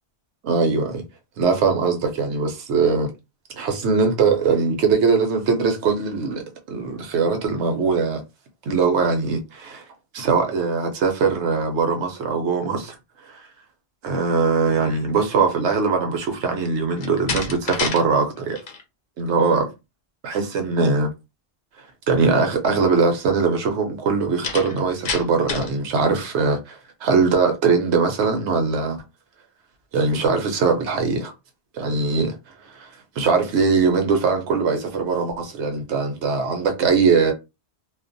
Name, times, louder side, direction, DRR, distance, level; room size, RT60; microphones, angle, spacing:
voice 1, 0.4-1.0 1.4-3.1 3.5-8.2 8.7-9.8 10.1-12.9 13.3-13.4 14.0-18.6 19.2-19.7 20.2-21.1 22.1-29.0 29.9-31.3 31.7-32.4 32.6-32.9 33.2-37.3, right 4 dB, 80° right, 0.9 m, -21 dB
Slam, 16.9-18.0 18.4-18.8 24.4-25.8, left 5 dB, 55° left, 0.6 m, -28 dB
2.4 x 2.0 x 2.5 m
omnidirectional pair, 1.2 m